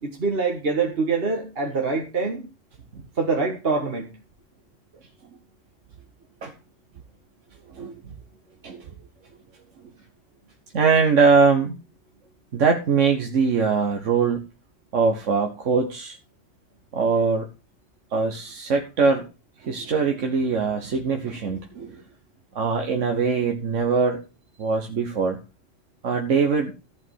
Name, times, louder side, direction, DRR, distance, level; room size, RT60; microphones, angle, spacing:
voice 1, 0.0-2.4 3.2-4.1, right 4 dB, 50° right, 1.8 m, -25 dB
voice 2, 7.7-8.1 8.6-8.9 10.7-11.8 12.5-14.4 14.9-16.2 16.9-17.5 18.1-19.3 19.6-22.0 22.5-24.2 24.6-25.4 26.0-26.7, right 5 dB, 75° right, 1.5 m, -22 dB
14.0 x 5.2 x 6.3 m
omnidirectional pair, 1.3 m